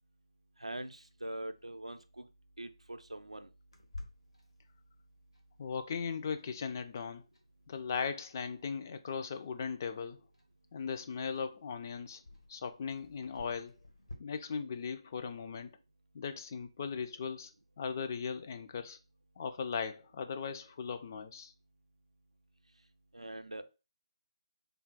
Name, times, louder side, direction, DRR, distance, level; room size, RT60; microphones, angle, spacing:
voice 1, 0.6-2.3 2.6-3.5 23.1-23.6, right 1 dB, 90° right, 0.4 m, -43 dB
Clock, 3.7-14.1, left 2 dB, 75° left, 1.0 m, -55 dB
voice 2, 5.6-7.2 7.7-10.2 10.7-12.2 12.5-13.7 14.2-15.7 16.1-17.5 17.8-19.0 19.4-21.5, left 6 dB, 30° left, 0.3 m, -38 dB
3.4 x 2.2 x 3.8 m
figure-of-eight pair, 150°, 3 cm